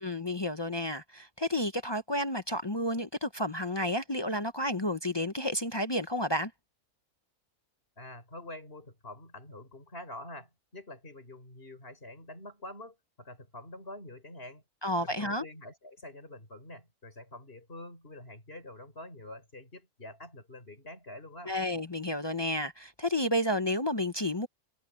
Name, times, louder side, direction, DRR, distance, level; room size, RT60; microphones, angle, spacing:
voice 1, 0.0-6.5 14.8-15.4 21.5-24.5, left 1 dB, 25° left, 0.6 m, -31 dB
voice 2, 8.0-14.6 15.0-21.5, left 1 dB, 40° left, 5.4 m, -46 dB
omnidirectional pair, 1.5 m